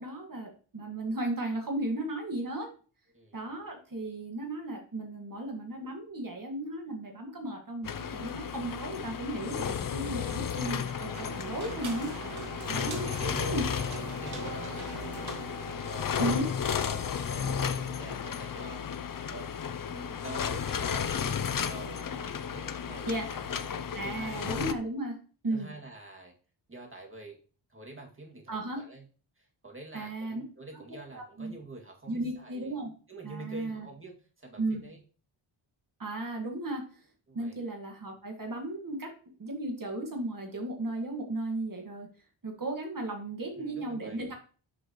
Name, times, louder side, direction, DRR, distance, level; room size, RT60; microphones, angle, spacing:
voice 1, 0.0-2.7 3.3-12.1 12.7-13.0 13.5-13.6 16.2-16.4 23.1-23.3 23.9-25.2 25.4-25.7 28.5-28.8 29.9-30.4 31.1-31.6 32.1-32.9 33.2-33.9 34.6-34.8 36.0-36.8 37.3-39.1 39.4-42.1 42.4-44.3, right 1 dB, 45° right, 2 dB, 1.8 m, -35 dB
voice 2, 3.1-3.6 12.7-15.3 15.6-16.5 16.8-24.5 25.5-26.3 26.7-27.4 27.7-29.0 29.4-32.7 33.1-35.0 37.3-37.6 43.6-44.3, right 2 dB, 25° right, 0 dB, 2.3 m, -46 dB
sound 1, 7.8-24.7, left 7 dB, 45° left, 0.6 m, -34 dB
sound 2, 10.7-16.2, right 5 dB, 80° right, 2.4 m, -42 dB
11.0 x 6.2 x 3.0 m, 0.39 s
wide cardioid pair, 115°, 47 cm